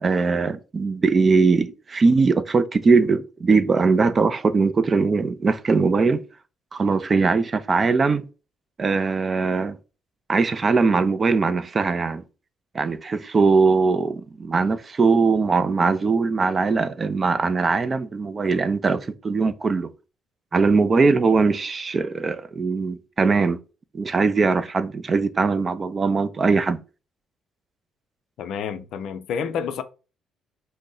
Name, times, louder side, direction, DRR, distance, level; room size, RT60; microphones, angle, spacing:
voice 1, 0.0-6.2 6.7-8.2 8.8-9.8 10.3-12.2 12.7-19.9 20.5-23.6 23.9-26.8, right 4 dB, 40° right, 0.4 m, -21 dB
voice 2, 28.4-29.8, left 7 dB, 70° left, 0.3 m, -29 dB
2.6 x 2.1 x 3.7 m
supercardioid pair, 55°, 0 cm